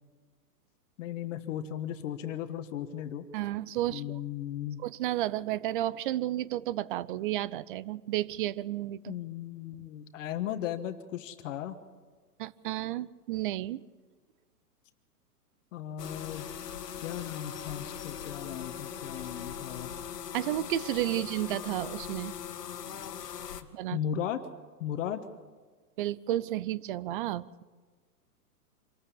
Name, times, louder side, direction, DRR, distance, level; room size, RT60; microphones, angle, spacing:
voice 1, 1.0-3.3 3.9-4.8 9.1-11.8 15.7-16.5 17.0-19.9 23.9-24.4 24.8-25.2, left 10 dB, 50° left, 8 dB, 1.5 m, -36 dB
voice 2, 3.3-4.2 4.8-9.1 12.4-13.8 20.3-22.3 23.7-24.0 26.0-27.6, right 14 dB, 35° right, 20 dB, 0.5 m, -32 dB
sound 1, 16.0-23.6, left 8 dB, 80° left, 1.9 m, -40 dB
26.0 x 13.5 x 8.5 m, 1.4 s
hypercardioid pair, 135°, 47 cm